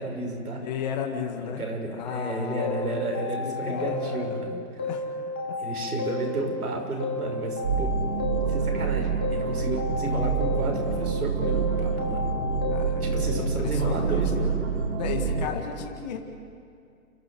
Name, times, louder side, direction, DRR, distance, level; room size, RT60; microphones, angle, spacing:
voice 1, 0.0-0.6 1.4-4.9 5.6-7.9 8.5-12.3 13.0-14.6, right 2 dB, 80° right, 2 dB, 6.1 m, -32 dB
voice 2, 0.6-5.1 5.5-5.6 6.1-6.3 12.7-14.5 15.0-16.2, left 7 dB, 30° left, 3 dB, 2.0 m, -35 dB
sound 1, 2.6-4.5 4.8-6.7 7.0-8.9 9.2-11.1 11.4-13.3, left 2 dB, 5° left, 0.6 m, -32 dB
sound 2, 7.6-15.5, right 5 dB, 65° right, 6.1 m, -27 dB
29.5 x 14.0 x 7.8 m, 2.4 s
hypercardioid pair, 155°, 44 cm